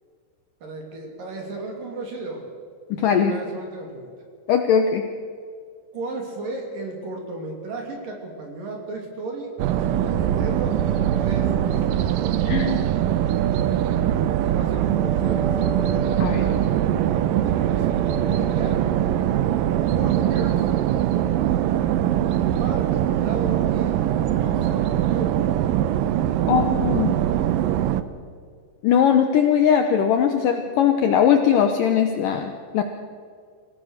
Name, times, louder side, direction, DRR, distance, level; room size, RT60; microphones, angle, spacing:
voice 1, 0.6-2.5 2.9-4.1 5.9-11.9 14.4-15.5 16.3-16.6 17.4-17.9 18.3-18.8 19.9-20.6 22.6-23.9 24.3-25.4, right 2 dB, 55° right, 1 dB, 4.4 m, -34 dB
voice 2, 2.9-3.4 4.5-5.0 12.5-12.9 16.2-16.4 26.5-27.2 28.8-32.8, left 8 dB, 75° left, 6 dB, 2.1 m, -20 dB
sound 1, 9.6-28.0, right 11 dB, 90° right, 2.0 m, -22 dB
26.5 x 16.5 x 6.5 m, 2.1 s
omnidirectional pair, 4.9 m